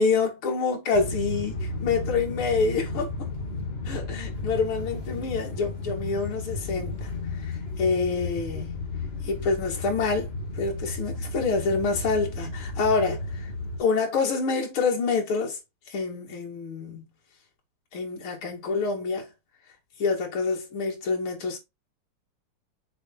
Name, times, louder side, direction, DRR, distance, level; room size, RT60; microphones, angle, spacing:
voice 1, 0.0-3.1 3.9-7.1 7.4-8.7 9.2-13.5 13.8-15.6 15.9-17.1 17.9-19.3 20.0-21.6, left 4 dB, 70° left, 3.2 m, -27 dB
sound 1, 0.9-13.8, left 2 dB, 30° left, 1.7 m, -33 dB
6.7 x 4.2 x 4.0 m
omnidirectional pair, 2.4 m